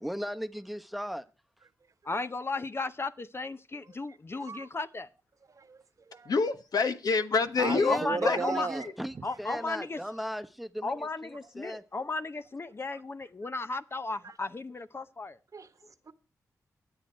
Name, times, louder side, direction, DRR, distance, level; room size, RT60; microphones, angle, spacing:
voice 1, 0.0-1.3 7.6-10.9 11.2-11.8, equal, ahead, 1.0 m, -37 dB
voice 2, 2.0-5.1 7.7-8.7 9.2-10.0 10.8-15.4, left 3 dB, 35° left, 0.7 m, -35 dB
voice 3, 3.8-4.7 5.5-6.4 7.6-9.3 12.9-13.0 14.2-14.4 15.5-16.1, right 4 dB, 50° right, 1.2 m, -38 dB
voice 4, 6.3-8.0 8.2-8.6, left 4 dB, 65° left, 1.3 m, -26 dB
23.0 x 7.9 x 4.4 m
cardioid pair, 50°, 7 cm